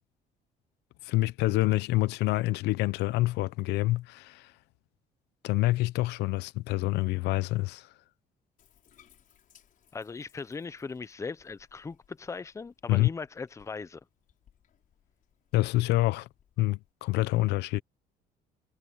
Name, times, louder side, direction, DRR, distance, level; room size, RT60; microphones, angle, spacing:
voice 1, 1.0-4.5 5.4-7.9 12.9-13.1 15.5-16.3 16.6-17.8, left 18 dB, 85° left, 0.8 m, -27 dB
Bathtub (filling or washing), 8.6-16.9, left 9 dB, 55° left, 6.2 m, -66 dB
voice 2, 9.9-14.0, left 4 dB, 15° left, 0.6 m, -39 dB
cardioid pair, 110°, 17 cm